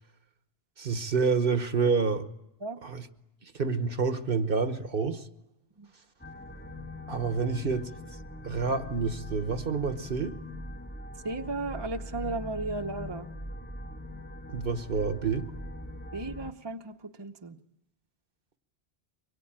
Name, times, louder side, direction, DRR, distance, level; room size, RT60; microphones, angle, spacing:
voice 1, 0.8-2.2 2.8-3.1 3.4-5.3 7.1-7.8 8.4-10.4 14.5-15.5, right 5 dB, 60° right, 9 dB, 1.3 m, -28 dB
sound 1, 6.2-16.5, left 1 dB, 10° left, 1.1 m, -41 dB
voice 2, 11.2-13.3 16.1-17.6, right 2 dB, 25° right, 5 dB, 1.0 m, -35 dB
24.5 x 22.0 x 8.9 m, 0.93 s
omnidirectional pair, 1.0 m